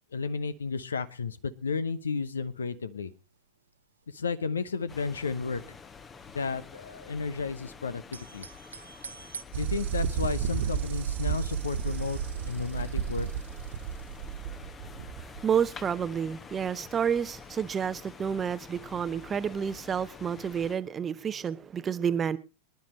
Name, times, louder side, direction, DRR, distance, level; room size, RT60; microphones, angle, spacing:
voice 1, 0.1-3.1 4.1-5.6 6.3-8.5 9.6-13.3, left 5 dB, 70° left, 0.9 m, -33 dB
sound 1, 3.1-3.7 4.0-5.7 6.0-7.6 7.9-9.4, right 6 dB, 75° right, 0.8 m, -46 dB
sound 2, 4.9-20.8, left 5 dB, 20° left, 1.0 m, -48 dB
sound 3, 9.5-15.4, right 8 dB, 55° right, 1.5 m, -32 dB
voice 2, 15.2-22.4, right 7 dB, 20° right, 0.8 m, -30 dB
24.5 x 10.5 x 3.1 m
figure-of-eight pair, 90°, 0 cm